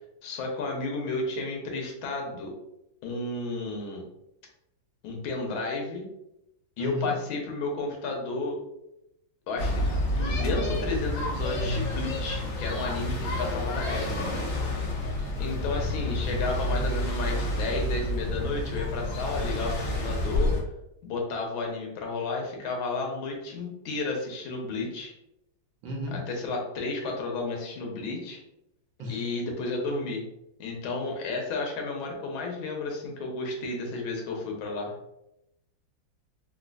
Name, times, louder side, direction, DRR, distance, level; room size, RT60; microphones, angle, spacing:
voice 1, 0.2-2.5 3.0-4.0 5.0-6.1 6.8-8.6 9.5-14.1 15.4-20.5 21.0-25.1 26.1-28.4 29.1-30.2 30.6-34.9, left 3 dB, 90° left, 0 dB, 1.6 m, -32 dB
voice 2, 6.8-7.1 14.0-14.9 25.8-26.2 29.0-29.3, left 2 dB, 80° right, -2 dB, 1.6 m, -36 dB
sound 1, 9.6-20.6, left 1 dB, 60° left, 0.9 m, -29 dB
4.2 x 2.2 x 2.4 m, 0.84 s
omnidirectional pair, 2.2 m